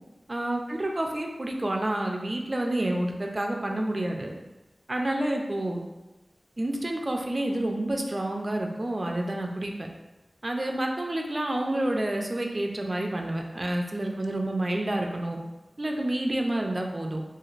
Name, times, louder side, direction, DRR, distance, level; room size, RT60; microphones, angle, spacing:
voice 1, 0.3-4.3 4.9-5.8 6.6-9.9 10.4-15.4 15.8-17.2, right 1 dB, 40° right, 2 dB, 0.3 m, -29 dB
3.1 x 2.4 x 2.4 m, 1.0 s
wide cardioid pair, 75°, 0 cm